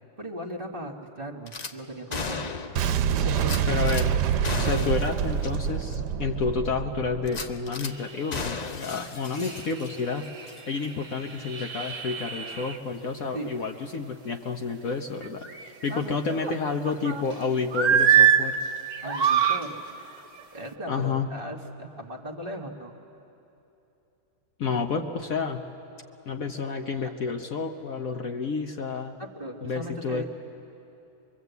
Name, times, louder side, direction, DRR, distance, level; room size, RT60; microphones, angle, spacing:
voice 1, 0.2-2.5 3.1-4.0 4.5-4.9 13.3-13.5 15.9-16.4 19.0-19.8 20.5-22.9 26.6-26.7 27.0-27.1 29.2-30.2, right 1 dB, 30° right, 1 dB, 1.6 m, -38 dB
Gunshot gunfire / Glass, 1.5-1.7 2.1-2.9 3.4-4.1 4.4-5.1 5.4-5.5 6.0-6.1 7.3-7.9 8.3-10.1 10.4-10.6, left 4 dB, 80° left, 0.3 m, -35 dB
Boom, 2.8-7.7, right 8 dB, 70° right, 1.3 m, -26 dB
voice 2, 3.7-4.1 4.6-10.3 10.7-15.5 15.8-18.6 20.9-21.3 24.6-25.6 26.3-29.1 29.6-30.3, left 4 dB, 55° left, 4 dB, 1.2 m, -30 dB
sound 1, 7.9-8.4 8.9-9.0 9.4-12.8 15.2-16.0 16.4-17.3 17.7-18.4 18.9-19.6 20.4-20.6, right 9 dB, 50° right, 1.3 m, -25 dB
24.5 x 23.0 x 8.2 m, 2.9 s
omnidirectional pair, 1.9 m